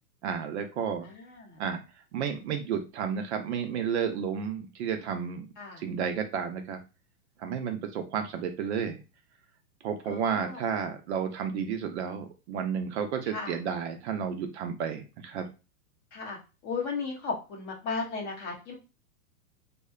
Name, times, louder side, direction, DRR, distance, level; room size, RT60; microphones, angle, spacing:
voice 1, 0.2-1.1 1.6-1.8 2.1-5.5 5.8-6.8 7.4-9.0 9.8-15.5, right 7 dB, 50° right, 6 dB, 0.5 m, -32 dB
voice 2, 1.0-1.6 5.6-5.8 10.1-10.6 13.3-13.6 16.1-16.4 16.6-18.7, left 4 dB, 25° left, 1 dB, 0.6 m, -35 dB
2.6 x 2.1 x 2.4 m, 0.30 s
hypercardioid pair, 140°, 45 cm